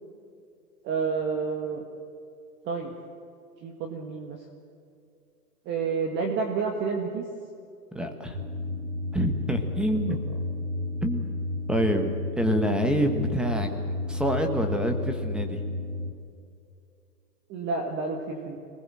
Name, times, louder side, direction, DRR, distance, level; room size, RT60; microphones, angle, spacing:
voice 1, 0.8-1.8 2.6-2.9 3.6-4.4 5.6-7.2 17.5-18.6, right 5 dB, 20° right, 2 dB, 1.8 m, -29 dB
voice 2, 7.9-8.3 9.1-10.2 11.0-11.2 11.7-13.7 14.1-15.6, equal, ahead, 5 dB, 1.4 m, -26 dB
sound 1, 8.3-16.1, left 2 dB, 60° right, 4.2 m, -32 dB
26.0 x 19.5 x 7.6 m, 2.5 s
hypercardioid pair, 145°, 49 cm